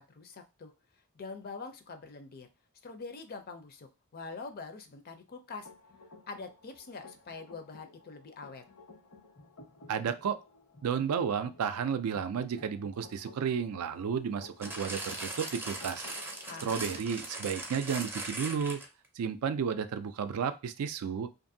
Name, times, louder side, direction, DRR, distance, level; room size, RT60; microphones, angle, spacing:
voice 1, 0.1-0.7 1.1-2.5 2.8-5.7 6.3-8.6 16.5-17.0, left 4 dB, 45° left, 7 dB, 0.5 m, -44 dB
sound 1, 5.6-16.7, left 2 dB, 80° left, 1.2 m, -55 dB
voice 2, 9.9-10.4 10.8-16.0 16.6-18.8 19.2-21.3, right 7 dB, 80° right, 10 dB, 0.4 m, -32 dB
sound 2, 14.6-19.1 19.8-19.9, right 2 dB, 10° right, 0.4 m, -39 dB
2.6 x 2.5 x 2.6 m, 0.28 s
head